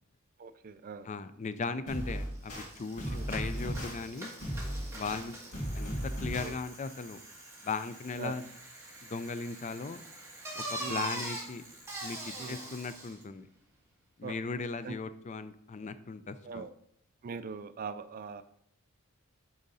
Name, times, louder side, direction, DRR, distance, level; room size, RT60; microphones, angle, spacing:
voice 1, 0.4-1.1 3.1-3.3 6.4-6.6 8.2-8.3 10.8-11.0 12.4-12.6 14.2-14.4 14.8-14.9 16.4-16.7 17.2-18.4, right 5 dB, 40° right, 11 dB, 0.4 m, -41 dB
voice 2, 1.0-4.3 4.9-5.4 5.7-7.2 7.6-8.5 9.0-10.0 10.6-11.6 12.0-12.2 12.5-13.5 14.2-16.6, left 4 dB, 35° left, 12 dB, 0.4 m, -37 dB
sound 1, 1.9-2.7 3.0-3.9 4.4-5.2 5.5-6.5, equal, 75° left, 2.2 m, -35 dB
Bicycle, 2.1-2.2 2.4-13.2, right 1 dB, 15° right, 1.5 m, -43 dB
8.9 x 3.8 x 4.1 m, 0.69 s
head